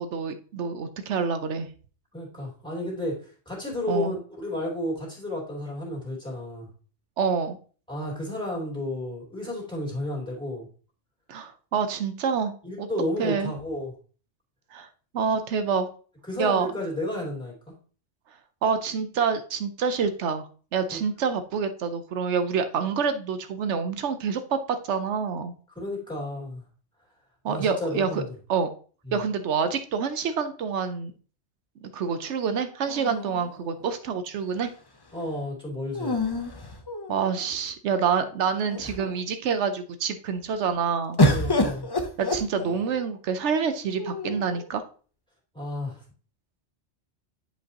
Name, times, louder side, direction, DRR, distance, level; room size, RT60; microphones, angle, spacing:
voice 1, 0.0-1.7 3.9-4.1 7.2-7.6 11.3-12.9 13.2-13.5 14.7-14.9 15.1-15.9 16.4-16.7 18.6-20.5 20.7-24.6 24.9-25.5 27.4-28.2 28.5-28.7 29.1-31.1 31.8-34.7 37.1-41.2 42.2-44.8, right 6 dB, 80° right, 9 dB, 1.0 m, -27 dB
voice 2, 2.1-6.7 7.9-10.7 12.6-13.9 16.3-17.5 20.9-21.0 25.7-26.6 27.5-28.3 29.1-29.2 35.1-36.2 41.3-41.9 45.5-46.0, left 1 dB, 5° left, -4 dB, 3.0 m, -32 dB
sound 1, 32.9-34.0 35.9-37.5 38.2-38.3 38.6-39.2 41.2-43.1 44.0-44.7, left 1 dB, 25° left, 0.6 m, -27 dB
9.9 x 5.2 x 2.9 m, 0.40 s
omnidirectional pair, 1.2 m